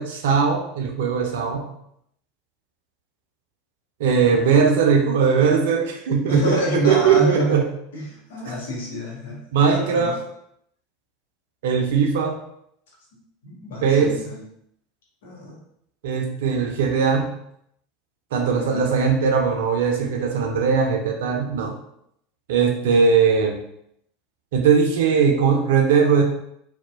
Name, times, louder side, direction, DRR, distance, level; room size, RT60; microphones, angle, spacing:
voice 1, 0.0-1.7 4.0-7.7 9.5-10.1 11.6-12.4 13.8-14.2 16.0-17.4 18.3-21.7 22.5-23.6 24.5-26.2, right 6 dB, 60° right, 2 dB, 0.4 m, -19 dB
voice 2, 6.3-7.6 7.9-9.4 9.7-10.2 13.4-14.4 15.2-15.6 18.4-18.9 23.0-23.1, right 1 dB, 65° left, -4 dB, 0.9 m, -27 dB
2.7 x 2.1 x 2.2 m, 0.73 s
figure-of-eight pair, 80°, 0 cm